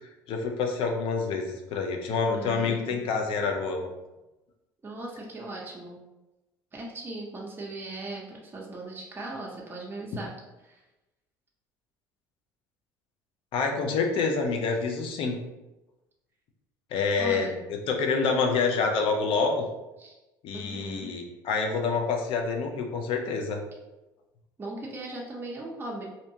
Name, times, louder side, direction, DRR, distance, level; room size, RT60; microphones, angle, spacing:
voice 1, 0.3-3.9 13.5-15.4 16.9-17.5 17.9-19.6 20.4-23.6, left 4 dB, 60° left, 3 dB, 0.5 m, -27 dB
voice 2, 2.3-3.0 4.8-6.0 6.7-10.4 10.6-10.8 17.2-17.6 20.0-20.2 20.5-21.1 24.6-26.0, right 2 dB, 20° right, -3 dB, 0.6 m, -38 dB
2.7 x 2.2 x 2.7 m, 1.0 s
hypercardioid pair, 65°, 10 cm